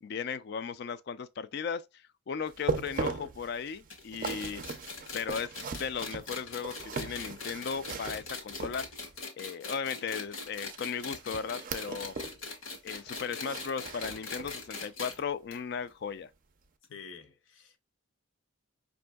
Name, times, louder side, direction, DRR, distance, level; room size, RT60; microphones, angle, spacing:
voice 1, 0.0-4.6 5.1-5.5 5.8-8.8 9.4-12.2 12.8-16.3, left 6 dB, 50° left, 0.3 m, -36 dB
sound 1, 2.5-9.2 10.6-12.4 12.7-14.7 15.1-15.3 15.8-15.9, right 4 dB, 40° right, 0.4 m, -39 dB
sound 2, 3.9-15.2 15.5-15.6 15.9-16.0 16.8-16.9, left 3 dB, 85° left, 1.4 m, -41 dB
voice 2, 16.9-17.8, left 6 dB, 65° left, 0.7 m, -48 dB
5.2 x 2.6 x 2.2 m
head